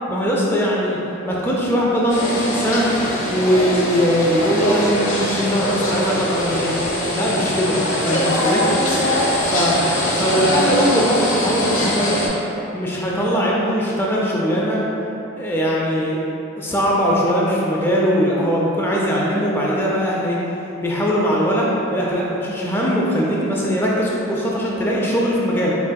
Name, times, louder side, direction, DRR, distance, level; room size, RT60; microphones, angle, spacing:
voice 1, 0.1-1.0 1.2-2.9 3.3-6.7 7.1-7.8 8.0-8.6 9.4-9.8 10.2-12.2 12.7-14.8 15.4-16.2 16.6-20.4 20.8-25.7, equal, 10° left, -5 dB, 0.4 m, -20 dB
sound 1, 2.1-12.3, left 1 dB, 85° left, 0.8 m, -22 dB
4.1 x 3.6 x 2.2 m, 3.0 s
head